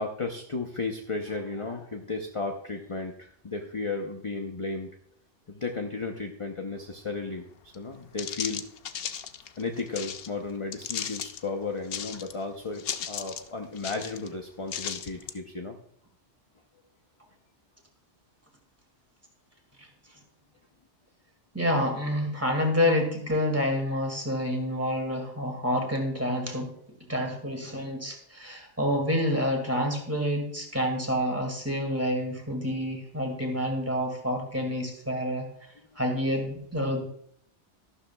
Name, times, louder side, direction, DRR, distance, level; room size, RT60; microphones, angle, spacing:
voice 1, 0.0-4.9 5.5-8.6 8.9-9.0 9.6-15.8, left 3 dB, 30° left, 3 dB, 0.8 m, -34 dB
sound 1, 7.7-7.8 8.2-10.3 10.7-11.4 11.8-12.4 12.7-13.5 13.8-14.3 14.7-15.4, left 8 dB, 60° left, 0.8 m, -35 dB
voice 2, 21.5-26.7 27.1-35.5 36.0-37.0, equal, 10° right, 2 dB, 2.1 m, -28 dB
13.0 x 11.5 x 2.3 m, 0.65 s
omnidirectional pair, 1.2 m